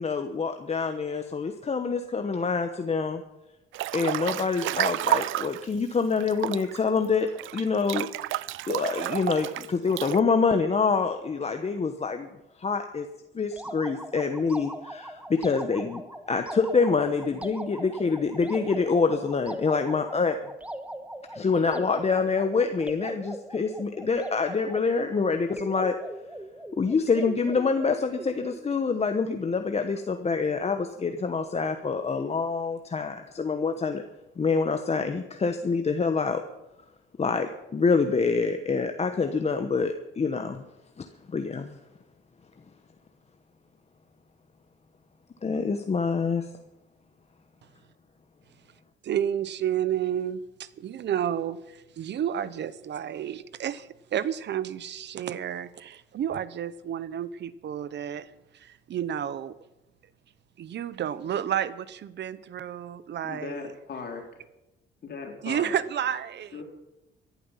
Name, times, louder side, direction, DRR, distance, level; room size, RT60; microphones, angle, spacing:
voice 1, 0.0-3.2 3.9-8.1 8.7-12.3 12.6-13.1 13.3-16.0 16.3-20.4 21.3-26.0 26.8-34.0 34.4-36.4 37.2-40.6 41.0-41.8 45.4-46.5, left 4 dB, 30° left, 7 dB, 1.1 m, -26 dB
Breathing / Bathtub (filling or washing) / Splash splatter, 3.7-5.7 6.2-10.2, right 15 dB, 80° right, 0.4 m, -30 dB
sound 1, 13.5-28.7, right 1 dB, 5° right, 1.3 m, -40 dB
voice 2, 49.0-59.5 60.6-63.7 65.4-66.6, right 10 dB, 60° right, 16 dB, 0.9 m, -31 dB
voice 3, 63.2-64.3 65.0-65.7 66.5-66.6, left 4 dB, 55° left, 1 dB, 3.9 m, -37 dB
17.0 x 11.5 x 5.7 m, 0.96 s
cardioid pair, 90°, 20 cm